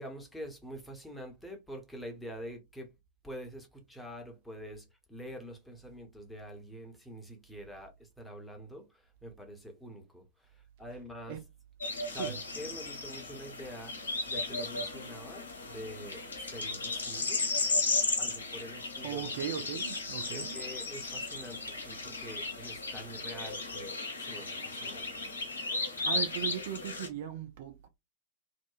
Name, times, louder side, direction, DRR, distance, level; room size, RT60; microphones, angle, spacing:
voice 1, 0.0-2.9 3.2-11.4 12.1-13.9 14.3-17.4 18.2-19.3 20.3-25.1, equal, 5° left, 0.8 m, -46 dB
sound 1, 11.8-27.1, left 3 dB, 75° left, 0.6 m, -35 dB
voice 2, 19.0-20.6 26.0-27.9, right 10 dB, 50° right, 0.4 m, -38 dB
2.7 x 2.1 x 2.3 m
figure-of-eight pair, 90°, 0 cm